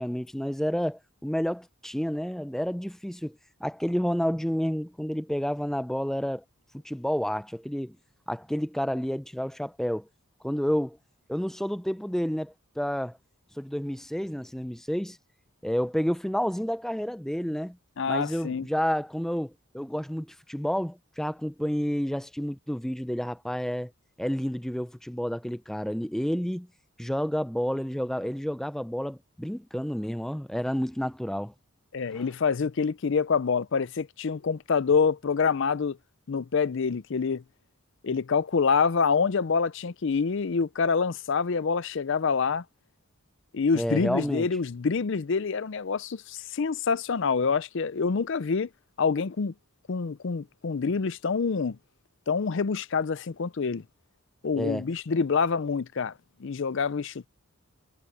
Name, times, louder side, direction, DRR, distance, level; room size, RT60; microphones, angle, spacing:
voice 1, 0.0-3.4 3.6-6.4 6.8-8.0 8.3-10.1 10.4-11.0 11.3-13.2 13.5-15.2 15.6-17.8 18.1-23.9 24.2-26.7 27.0-31.5 32.1-32.2 43.7-44.5 54.6-54.9, equal, ahead, 0.4 m, -30 dB
voice 2, 18.0-18.7 31.9-36.0 36.3-37.4 38.0-42.6 43.5-48.7 49.0-49.5 49.9-51.8 52.3-53.8 54.4-56.1 56.4-57.3, left 5 dB, 55° left, 0.5 m, -26 dB
head